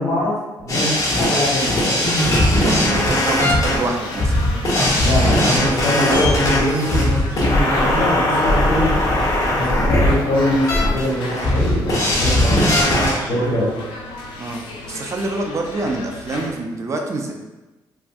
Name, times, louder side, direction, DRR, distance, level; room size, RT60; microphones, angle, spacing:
voice 1, 0.0-2.0 4.9-9.0 9.5-12.8 13.3-13.7, left 1 dB, 60° left, -5 dB, 1.3 m, -23 dB
sound 1, 0.7-13.1, left 1 dB, 45° left, 1.0 m, -18 dB
voice 2, 2.5-4.3 14.4-17.3, right 2 dB, 35° right, 3 dB, 0.4 m, -26 dB
sound 2, 2.9-16.5, left 2 dB, 90° left, 0.4 m, -35 dB
3.4 x 2.5 x 2.3 m, 1.1 s
cardioid pair, 85°, 8 cm